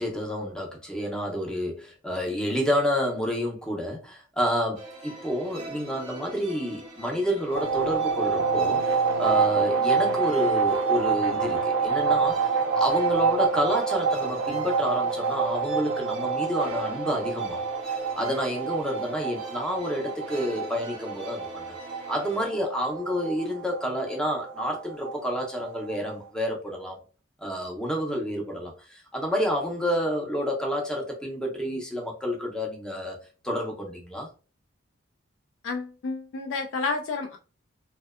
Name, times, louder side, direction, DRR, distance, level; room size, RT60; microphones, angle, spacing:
voice 1, 0.0-12.5 12.8-17.6 17.9-21.7 22.1-27.0 27.4-33.2 33.4-34.3, equal, 5° left, 0.5 m, -29 dB
sound 1, 4.7-22.4, right 1 dB, 30° right, 0.8 m, -44 dB
sound 2, 7.5-26.1, right 5 dB, 65° right, 0.4 m, -27 dB
voice 2, 35.6-37.4, left 4 dB, 70° left, 0.3 m, -30 dB
2.6 x 2.1 x 2.3 m
head